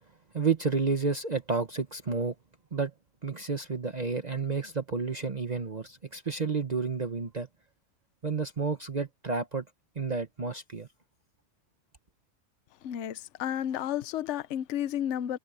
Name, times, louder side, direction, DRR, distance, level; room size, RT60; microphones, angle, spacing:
voice 1, 0.3-2.3 2.7-2.9 3.2-7.5 8.2-9.6 10.0-10.9, right 4 dB, 35° right, 1.1 m, -30 dB
voice 2, 12.8-15.4, left 10 dB, 70° left, 1.0 m, -32 dB
omnidirectional pair, 1.3 m